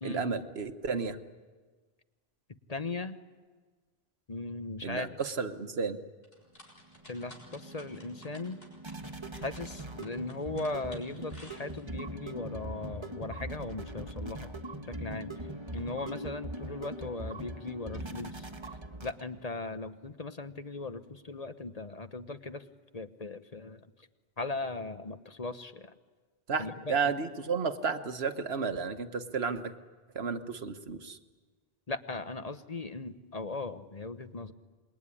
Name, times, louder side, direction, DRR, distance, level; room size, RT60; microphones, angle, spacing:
voice 1, 0.0-1.2 4.8-6.0 26.5-29.7 30.1-31.2, right 5 dB, 80° right, 9 dB, 1.5 m, -32 dB
voice 2, 2.7-3.2 4.3-5.2 7.1-8.6 9.4-14.5 14.9-15.5 15.7-18.5 19.0-22.6 22.9-23.9 24.4-25.9 26.6-27.1 31.9-34.5, left 3 dB, 40° left, 10 dB, 1.1 m, -38 dB
sound 1, 6.2-12.1, left 1 dB, 70° left, 6.7 m, -54 dB
sound 2, 6.7-19.5, right 1 dB, 25° right, 1.3 m, -42 dB
27.0 x 22.0 x 9.9 m, 1.4 s
omnidirectional pair, 1.0 m